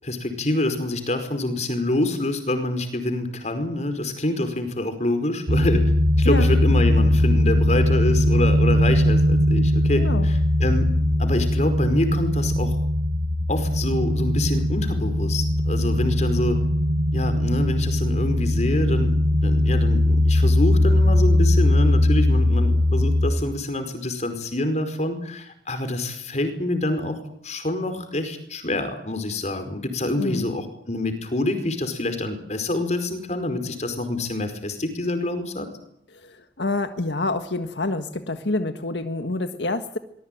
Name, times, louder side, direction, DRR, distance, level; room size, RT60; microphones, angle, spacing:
voice 1, 0.0-5.8 6.2-10.9 11.2-12.8 13.5-16.6 17.1-35.7, left 1 dB, 40° left, 8 dB, 5.0 m, -26 dB
sound 1, 5.5-23.3, left 1 dB, 65° right, 3.4 m, -20 dB
voice 2, 6.2-6.6 9.9-10.3 30.2-30.4 36.2-40.0, left 2 dB, 80° left, 8 dB, 1.7 m, -27 dB
24.5 x 20.5 x 9.3 m, 0.75 s
head